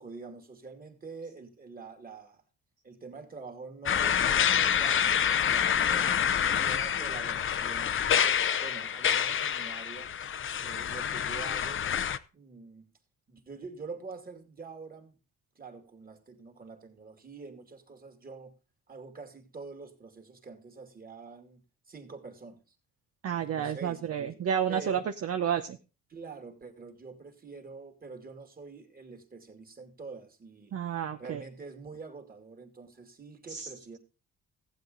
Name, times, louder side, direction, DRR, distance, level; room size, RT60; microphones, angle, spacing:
voice 1, 0.0-2.4 2.8-6.1 6.4-10.1 10.6-11.8 12.3-12.9 13.3-15.1 15.6-18.5 18.9-21.6 21.9-22.6 23.5-24.4 24.7-25.1 26.1-30.7 31.2-34.0, right 4 dB, 30° right, 2.5 m, -46 dB
sound 1, 3.9-12.2, left 8 dB, 40° left, 0.7 m, -27 dB
voice 2, 23.2-25.8 30.7-31.4 33.5-33.7, right 8 dB, 50° right, 0.8 m, -30 dB
15.0 x 8.2 x 3.9 m
cardioid pair, 90°, 30 cm